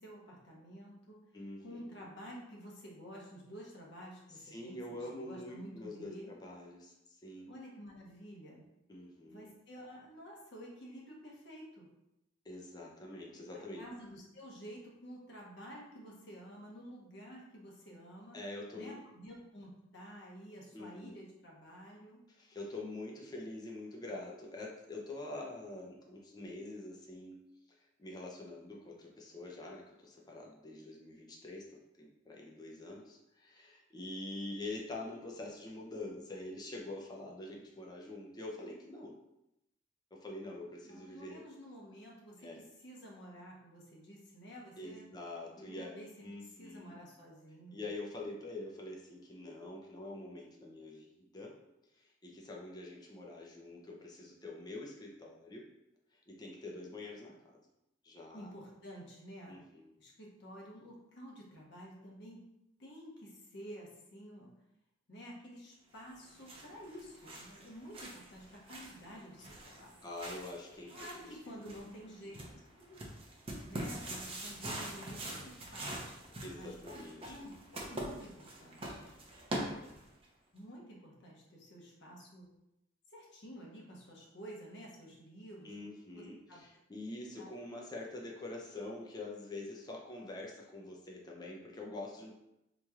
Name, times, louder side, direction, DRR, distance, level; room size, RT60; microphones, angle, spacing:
voice 1, 0.0-1.2 1.6-6.3 7.5-8.6 9.2-11.9 13.5-18.4 18.7-22.2 40.8-45.1 45.6-47.9 58.3-59.6 60.0-62.5 62.8-64.5 65.1-70.0 70.9-72.6 72.9-73.1 73.6-76.2 76.5-79.1 80.5-82.5 83.1-85.7 86.1-86.6 87.2-87.5, equal, 60° left, -3 dB, 1.0 m, -51 dB
voice 2, 1.3-1.8 4.3-7.5 8.9-9.5 12.4-13.9 18.3-19.0 20.7-21.2 22.3-27.4 27.8-39.2 40.1-41.4 42.4-42.6 44.8-47.0 47.7-51.6 51.9-55.7 56.1-57.6 58.0-58.5 59.5-60.0 70.0-71.4 71.6-71.8 76.3-77.4 85.6-92.3, left 2 dB, 20° left, -1 dB, 0.5 m, -45 dB
sound 1, 66.1-80.3, right 1 dB, 30° right, 0.6 m, -44 dB
4.2 x 3.0 x 2.4 m, 0.86 s
head